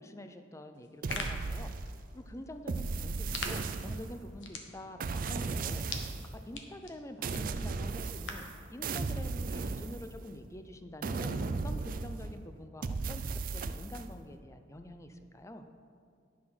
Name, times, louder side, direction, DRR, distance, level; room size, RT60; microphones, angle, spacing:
voice 1, 0.0-1.9 2.1-15.6, left 1 dB, 15° left, 8 dB, 0.5 m, -47 dB
sound 1, 0.8-8.6, left 4 dB, 90° left, 1.0 m, -45 dB
sound 2, 1.0-2.1 2.7-4.3 5.0-6.3 7.2-8.5 8.8-10.4 11.0-12.4 12.8-14.1, right 4 dB, 50° right, 0.4 m, -36 dB
9.8 x 6.2 x 5.6 m, 2.3 s
head